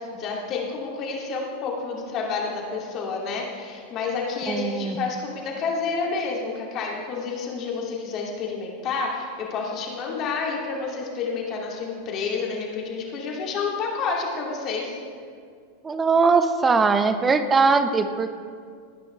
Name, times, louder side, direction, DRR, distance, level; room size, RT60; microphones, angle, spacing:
voice 1, 0.1-15.0, left 4 dB, 40° left, -2 dB, 2.8 m, -29 dB
voice 2, 4.5-5.1 15.8-18.3, right 4 dB, 20° right, 9 dB, 0.9 m, -20 dB
19.5 x 9.7 x 3.4 m, 2.1 s
hypercardioid pair, 90°, 0 cm